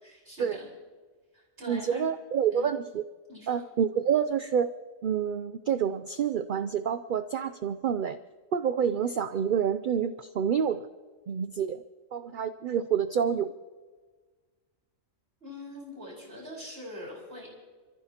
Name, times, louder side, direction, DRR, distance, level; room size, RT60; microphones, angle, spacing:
voice 1, 0.0-0.7 1.3-2.1 2.5-2.7 3.3-3.6 15.4-17.5, left 1 dB, 45° right, -4 dB, 4.8 m, -43 dB
voice 2, 1.7-3.0 3.5-4.7 5.0-8.2 8.5-10.9 11.3-11.8 12.1-13.5, right 8 dB, 65° right, 11 dB, 0.5 m, -28 dB
28.0 x 14.5 x 2.9 m, 1.4 s
omnidirectional pair, 1.4 m